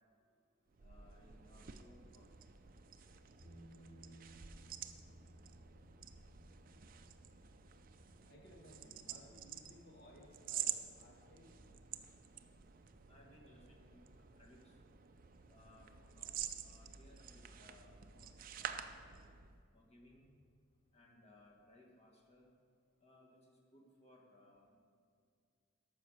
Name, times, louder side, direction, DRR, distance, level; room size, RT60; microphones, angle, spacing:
voice 1, 0.1-1.1 8.3-11.7 11.9-12.1, left 1 dB, 50° left, -1 dB, 1.9 m, -62 dB
sound 1, 0.7-19.6, right 10 dB, 40° right, 0.5 m, -49 dB
voice 2, 0.8-2.3 13.1-14.8 15.5-18.3 18.6-18.9 19.7-20.3 20.9-22.5 23.0-24.8, left 1 dB, 30° left, -1 dB, 1.8 m, -64 dB
Bass guitar, 3.4-9.6, equal, 15° left, 3.4 m, -61 dB
13.0 x 6.0 x 6.5 m, 2.1 s
head